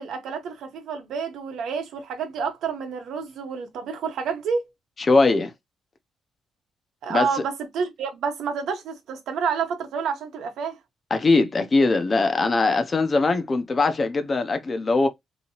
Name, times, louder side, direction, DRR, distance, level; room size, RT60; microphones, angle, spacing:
voice 1, 0.0-4.7 7.0-10.8, right 6 dB, 85° right, 0.9 m, -29 dB
voice 2, 5.1-5.5 7.1-7.3 11.1-15.1, left 3 dB, 25° left, 0.4 m, -21 dB
2.9 x 2.7 x 2.7 m
wide cardioid pair, 180°, 0 cm